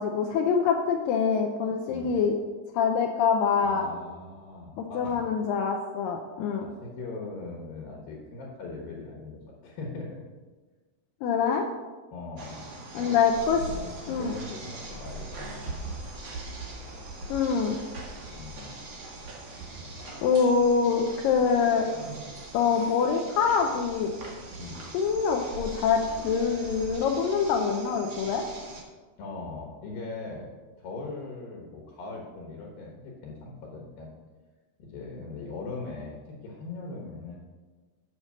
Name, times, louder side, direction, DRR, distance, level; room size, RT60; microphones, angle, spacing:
voice 1, 0.0-2.4 2.7-3.9 4.8-6.7 11.2-11.7 12.9-13.6 14.1-14.3 17.3-17.8 20.2-21.9 22.5-24.1 24.9-28.4, left 6 dB, 85° left, 3 dB, 1.9 m, -25 dB
voice 2, 3.6-5.3 6.6-10.1 12.1-13.2 13.4-15.9 18.3-18.8 19.8-20.1 24.6-24.8 29.2-30.5 30.8-34.1 34.8-37.4, left 3 dB, 70° left, -1 dB, 2.8 m, -40 dB
sound 1, 12.4-28.8, right 2 dB, 80° right, 1.0 m, -41 dB
8.4 x 6.6 x 6.3 m, 1.3 s
omnidirectional pair, 4.7 m